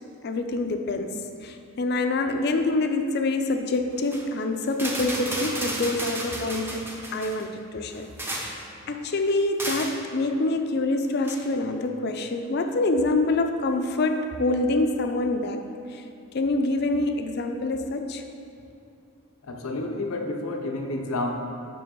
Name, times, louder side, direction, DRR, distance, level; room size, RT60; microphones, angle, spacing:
voice 1, 0.2-8.6 8.9-15.6 15.9-16.0 16.3-18.2, left 2 dB, 50° left, 6 dB, 0.4 m, -26 dB
sound 1, 4.0-4.2 4.7-7.4 7.9-8.6 9.6-10.0 11.2-11.4, right 1 dB, 10° right, 0.6 m, -32 dB
voice 2, 19.4-21.3, left 2 dB, 85° left, 3 dB, 0.7 m, -30 dB
6.8 x 5.6 x 3.7 m, 2.7 s
head